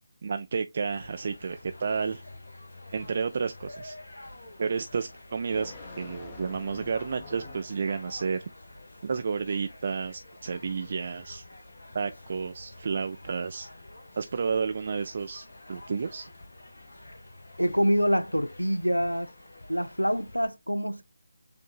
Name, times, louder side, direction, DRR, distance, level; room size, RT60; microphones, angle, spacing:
voice 1, 0.2-2.2 2.9-3.9 4.6-8.4 9.0-11.4 11.9-13.7 14.2-16.3, right 5 dB, 40° right, 0.3 m, -31 dB
sound 1, 0.8-20.5, left 1 dB, 65° left, 1.0 m, -48 dB
sound 2, 1.4-7.9, left 3 dB, 25° left, 0.9 m, -49 dB
voice 2, 17.6-19.3 19.7-21.0, equal, 90° left, 0.5 m, -26 dB
7.0 x 2.7 x 2.3 m
figure-of-eight pair, 155°, 0 cm